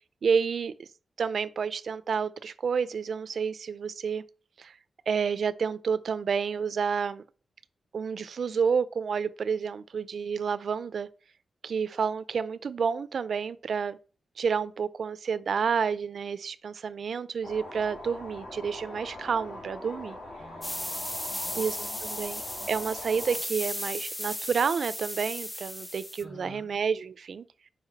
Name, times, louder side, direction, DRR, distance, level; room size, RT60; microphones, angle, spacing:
voice 1, 0.2-0.9 1.2-4.2 4.6-4.8 5.1-7.2 7.9-11.1 11.6-14.0 14.4-20.2 21.6-21.8 22.0-22.4 22.7-27.4, right 6 dB, 55° right, 0.5 m, -29 dB
sound 1, 17.4-23.4, left 1 dB, 75° left, 2.5 m, -42 dB
voice 2, 20.4-22.2 22.6-22.7 26.2-26.7, left 2 dB, 60° left, 3.6 m, -51 dB
sound 2, 20.6-26.2, left 1 dB, 10° left, 0.4 m, -36 dB
5.8 x 5.2 x 5.7 m
wide cardioid pair, 175°, 0 cm